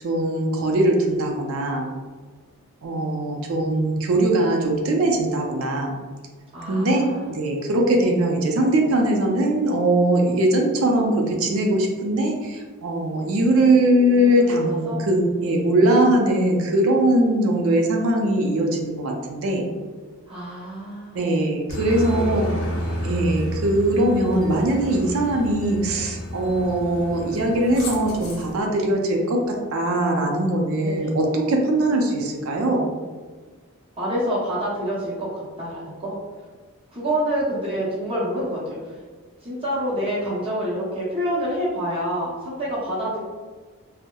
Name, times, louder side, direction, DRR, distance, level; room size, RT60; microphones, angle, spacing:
voice 1, 0.0-1.8 2.8-6.0 6.7-19.6 21.1-22.5 23.0-32.9, right 1 dB, 70° right, 1 dB, 0.4 m, -21 dB
voice 2, 6.5-7.3 14.1-15.1 20.3-21.2 21.9-22.5 30.8-31.1 34.0-36.2 36.9-38.9 39.4-43.2, equal, 25° right, -8 dB, 0.7 m, -27 dB
Aircraft, 21.7-28.5, equal, 65° left, 0.6 m, -31 dB
2.7 x 2.0 x 2.2 m, 1.4 s
head